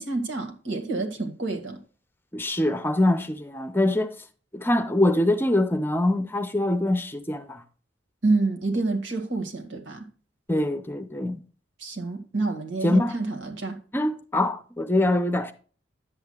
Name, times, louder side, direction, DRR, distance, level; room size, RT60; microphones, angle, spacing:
voice 1, 0.0-1.8 8.2-10.1 11.8-13.8, right 3 dB, 85° right, 2.0 m, -28 dB
voice 2, 2.3-4.1 4.5-7.6 10.5-11.4 12.8-13.1 13.9-15.5, left 1 dB, 10° left, 0.6 m, -24 dB
10.5 x 8.3 x 2.4 m
head